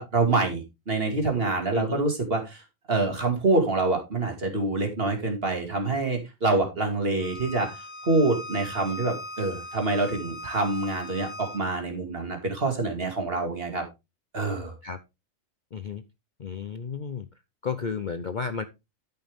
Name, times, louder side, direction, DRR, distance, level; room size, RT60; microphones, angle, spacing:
voice 1, 0.0-2.6 2.9-7.7 8.0-13.8 14.3-14.7, right 2 dB, 45° right, 4 dB, 2.6 m, -26 dB
voice 2, 1.7-2.0 14.8-15.0 15.7-16.0 16.4-17.3 17.6-18.6, left 5 dB, 45° left, 10 dB, 0.7 m, -32 dB
Bowed string instrument, 7.2-11.6, equal, 70° left, 1.9 m, -39 dB
13.0 x 5.8 x 3.5 m, 0.25 s
omnidirectional pair, 1.4 m